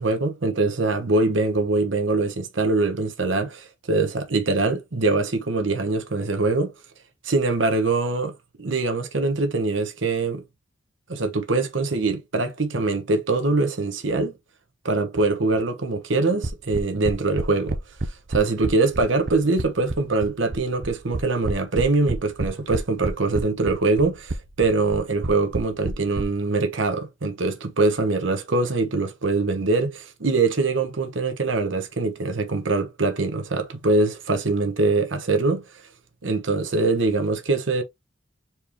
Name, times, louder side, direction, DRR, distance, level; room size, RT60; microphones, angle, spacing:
voice 1, 0.0-6.7 7.2-10.4 11.1-14.3 14.8-17.8 18.3-35.6 36.2-37.8, right 3 dB, 85° right, 1.1 m, -23 dB
sound 1, 16.4-26.2, right 2 dB, 50° right, 0.6 m, -28 dB
4.4 x 3.5 x 3.0 m
head